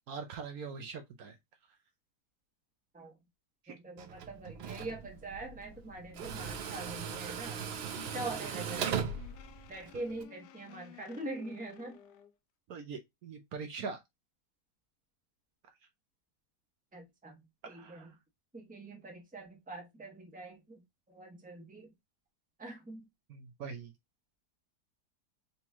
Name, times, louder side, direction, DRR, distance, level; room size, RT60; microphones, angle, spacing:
voice 1, 0.1-1.4 3.6-3.8 7.3-7.7 12.7-14.0 17.6-18.1 23.3-23.9, right 5 dB, 70° right, 1.1 m, -43 dB
voice 2, 3.7-7.6 7.9-9.1 9.7-12.0 16.9-17.4 17.7-18.1 18.5-20.8 21.1-21.9 22.6-23.0, right 2 dB, 5° right, 0.9 m, -43 dB
Tools, 4.0-10.2, right 7 dB, 90° right, 0.5 m, -39 dB
sound 1, 7.8-12.3, left 11 dB, 85° left, 1.2 m, -54 dB
4.1 x 3.0 x 3.5 m
omnidirectional pair, 1.8 m